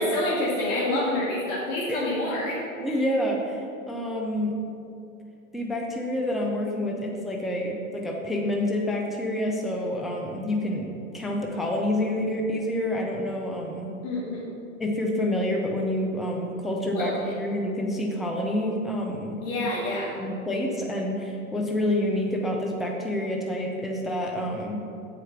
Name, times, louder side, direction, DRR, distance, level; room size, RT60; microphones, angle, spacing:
voice 1, 0.0-2.6 2.9-3.0 14.0-14.4 16.9-17.3 19.4-20.1, left 1 dB, 35° left, -6 dB, 1.5 m, -27 dB
voice 2, 2.8-3.6 3.9-4.5 5.5-13.9 14.8-17.1 17.4-19.7 20.2-24.8, left 1 dB, ahead, 0 dB, 0.4 m, -28 dB
7.6 x 5.0 x 5.8 m, 2.6 s
hypercardioid pair, 115°, 41 cm